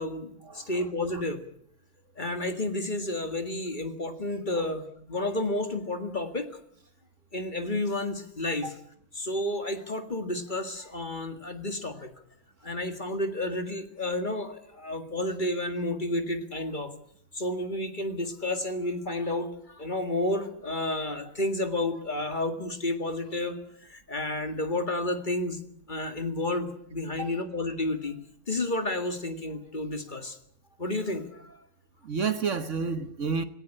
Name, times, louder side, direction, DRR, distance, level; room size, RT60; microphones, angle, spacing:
voice 1, 0.0-1.4 2.2-6.6 7.3-8.8 9.1-12.1 12.6-16.9 17.3-25.6 25.9-28.1 28.5-30.4 30.8-31.7, left 1 dB, 30° left, 2.0 m, -31 dB
voice 2, 32.0-33.4, right 5 dB, 55° right, 1.4 m, -29 dB
19.0 x 17.5 x 10.0 m
omnidirectional pair, 1.7 m